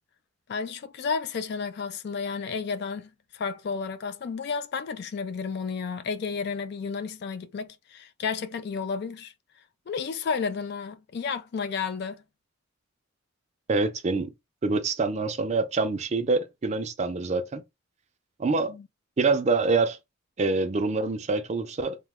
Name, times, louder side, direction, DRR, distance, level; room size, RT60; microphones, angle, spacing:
voice 1, 0.5-9.3 9.9-12.2 18.7-18.9, left 5 dB, 55° left, 0.3 m, -32 dB
voice 2, 13.7-14.3 14.6-17.6 18.4-18.7 19.2-20.0 20.4-22.0, right 3 dB, 35° right, 0.4 m, -25 dB
3.0 x 2.1 x 3.5 m
head